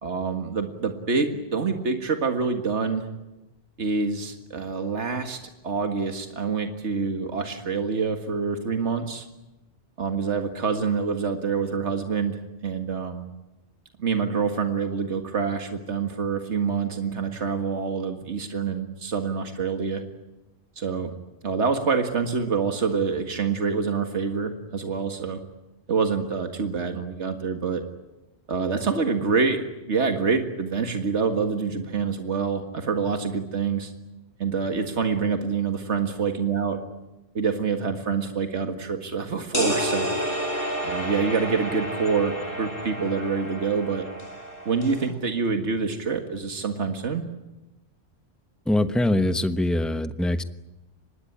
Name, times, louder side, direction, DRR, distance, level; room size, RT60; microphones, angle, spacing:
voice 1, 0.0-3.1 3.8-5.4 5.6-9.3 10.0-13.3 14.0-20.0 20.8-21.1 21.4-25.4 25.9-27.8 28.5-33.9 34.4-36.8 37.3-40.1 40.8-44.1 44.7-47.2, right 5 dB, 80° right, 6 dB, 2.1 m, -26 dB
sound 1, 39.5-45.1, equal, 50° left, 5.3 m, -30 dB
voice 2, 48.7-50.4, left 1 dB, ahead, 10 dB, 1.0 m, -23 dB
25.5 x 20.5 x 10.0 m, 0.99 s
omnidirectional pair, 1.2 m